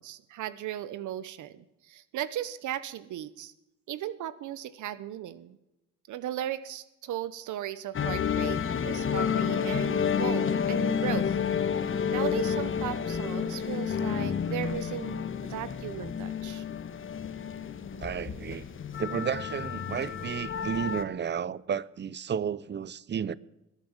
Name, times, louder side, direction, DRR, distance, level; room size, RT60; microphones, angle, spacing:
voice 1, 0.0-3.5 3.9-5.6 6.1-8.6 8.8-11.4 12.1-16.6, right 11 dB, 75° right, 0.9 m, -36 dB
sound 1, 7.9-21.0, left 7 dB, 40° left, 1.3 m, -30 dB
voice 2, 18.0-18.7 19.0-23.3, right 8 dB, 35° right, 0.7 m, -32 dB
20.5 x 9.0 x 7.4 m
cardioid pair, 90°, 30 cm